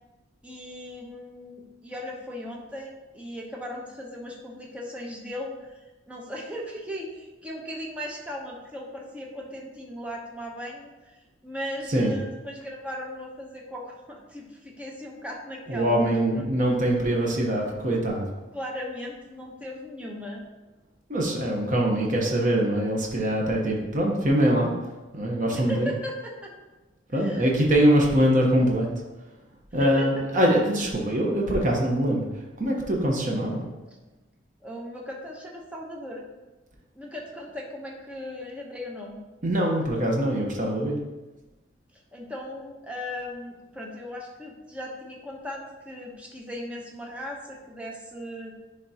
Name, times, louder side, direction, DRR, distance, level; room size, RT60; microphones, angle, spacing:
voice 1, 0.4-5.8 6.1-16.4 18.5-20.4 25.5-26.5 27.1-27.4 29.8-30.3 33.9-34.0 34.6-36.3 36.9-39.2 41.9-48.5, left 1 dB, 5° right, -1 dB, 0.8 m, -37 dB
voice 2, 15.7-18.2 21.1-24.7 25.1-25.9 27.1-28.9 29.7-32.2 32.6-33.6 39.4-41.0, right 1 dB, 40° right, -1 dB, 1.0 m, -23 dB
10.0 x 3.7 x 2.8 m, 1.1 s
head